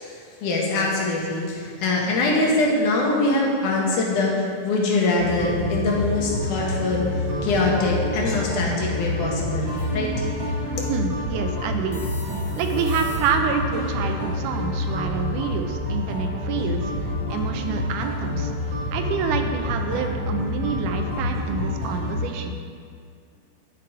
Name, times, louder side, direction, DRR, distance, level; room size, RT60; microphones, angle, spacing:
voice 1, 0.0-10.1, left 2 dB, 75° left, -2 dB, 2.9 m, -23 dB
sound 1, 5.2-22.2, left 2 dB, 50° right, 1.5 m, -28 dB
sound 2, 9.8-10.1 11.9-13.6, left 1 dB, 40° left, 1.4 m, -43 dB
voice 2, 10.9-12.0 12.6-16.8 17.3-18.5 18.9-22.6, right 6 dB, 80° right, 5 dB, 2.2 m, -27 dB
11.0 x 6.3 x 4.8 m, 2.2 s
omnidirectional pair, 3.7 m